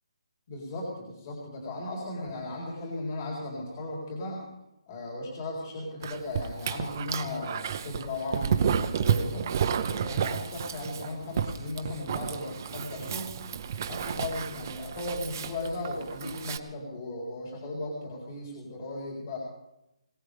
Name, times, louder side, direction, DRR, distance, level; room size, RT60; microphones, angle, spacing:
voice 1, 0.5-4.5 4.9-9.4 9.9-13.3 13.8-19.4, left 2 dB, 35° left, -3 dB, 3.9 m, -36 dB
Dog, 6.0-16.6, right 7 dB, 30° right, 0.7 m, -31 dB
22.0 x 18.0 x 3.5 m, 0.88 s
hypercardioid pair, 170°, 3 cm